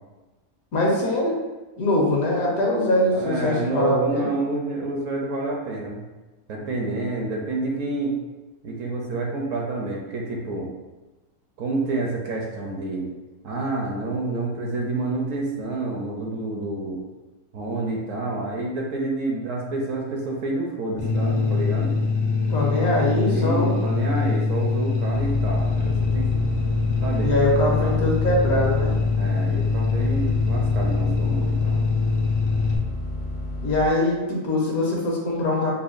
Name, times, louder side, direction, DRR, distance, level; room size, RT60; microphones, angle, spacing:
voice 1, 0.7-1.4 1.8-4.3 22.5-23.7 27.2-28.9 33.6-35.7, left 1 dB, 70° left, -3 dB, 1.3 m, -22 dB
voice 2, 3.1-6.0 6.5-8.2 8.6-10.7 11.6-13.1 13.4-17.0 17.5-21.9 23.1-26.4 27.0-27.9 29.2-31.8, right 2 dB, 65° right, -1 dB, 0.9 m, -28 dB
sound 1, 21.0-32.8, left 4 dB, 90° left, 1.2 m, -23 dB
sound 2, 25.1-33.9, left 1 dB, 55° left, 0.6 m, -31 dB
5.6 x 2.2 x 2.5 m, 1.1 s
omnidirectional pair, 1.6 m